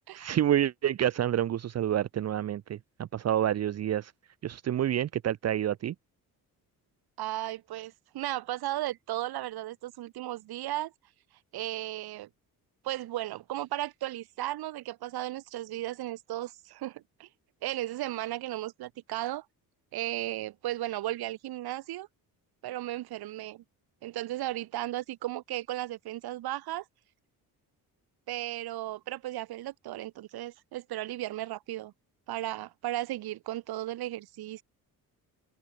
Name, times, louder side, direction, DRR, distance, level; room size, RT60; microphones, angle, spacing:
voice 1, 0.2-4.1 4.4-5.9, right 11 dB, 45° right, 0.9 m, -28 dB
voice 2, 7.2-10.9 11.5-12.3 12.8-17.3 17.6-19.5 19.9-22.1 22.6-23.6 24.0-26.8 28.3-31.9 32.3-34.6, right 15 dB, 85° right, 2.4 m, -35 dB
cardioid pair, 170°, 37 cm